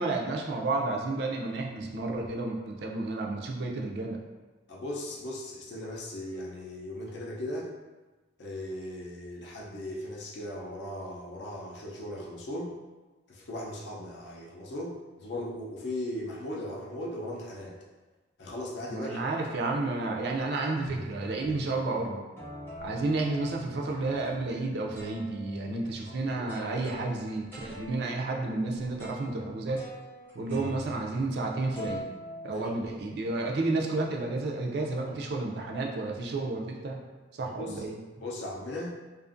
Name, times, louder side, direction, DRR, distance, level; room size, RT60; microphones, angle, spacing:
voice 1, 0.0-4.2 18.9-22.2 22.8-29.8 30.3-32.0 32.4-37.0 37.3-38.0, right 2 dB, 55° right, 0 dB, 0.3 m, -31 dB
voice 2, 4.7-7.7 8.4-12.8 13.3-17.8 18.4-19.3 26.0-26.8 32.5-32.7 37.4-37.8 38.2-38.9, left 1 dB, 60° left, -2 dB, 0.5 m, -38 dB
sound 1, 20.4-20.5 20.9-21.9 22.4-24.6 24.9-31.5 31.8-33.2, equal, 10° left, 0.6 m, -44 dB
2.5 x 2.4 x 2.5 m, 1.2 s
head